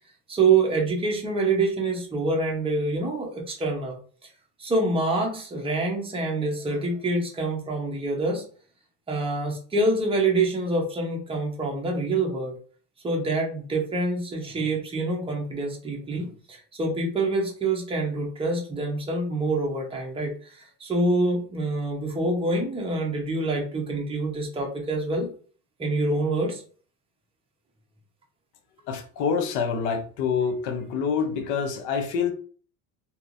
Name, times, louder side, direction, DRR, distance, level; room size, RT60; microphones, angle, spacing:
voice 1, 0.3-3.9 4.6-8.4 9.1-12.6 13.0-25.3 25.8-26.6, right 2 dB, 15° right, -1 dB, 0.8 m, -26 dB
voice 2, 28.9-32.3, left 6 dB, 70° left, 6 dB, 0.8 m, -26 dB
3.3 x 2.9 x 2.6 m, 0.43 s
cardioid pair, 140°, 38 cm